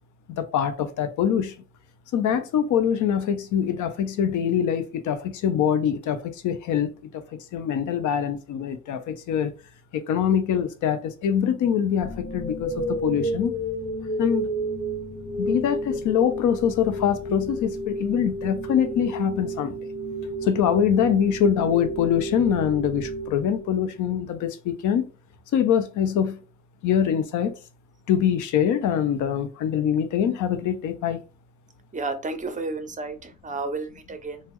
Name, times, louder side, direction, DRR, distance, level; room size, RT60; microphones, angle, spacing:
voice 1, 0.4-1.5 2.1-9.5 9.9-13.6 14.2-14.5 15.3-19.8 20.4-25.1 25.5-26.4 26.8-27.5 28.1-31.2, left 8 dB, 80° left, 0.6 m, -24 dB
sound 1, 12.0-24.1, right 1 dB, 30° left, 1.8 m, -31 dB
voice 2, 31.9-34.4, right 3 dB, 25° right, 0.5 m, -32 dB
3.4 x 2.1 x 3.0 m
cardioid pair, 90°, 30 cm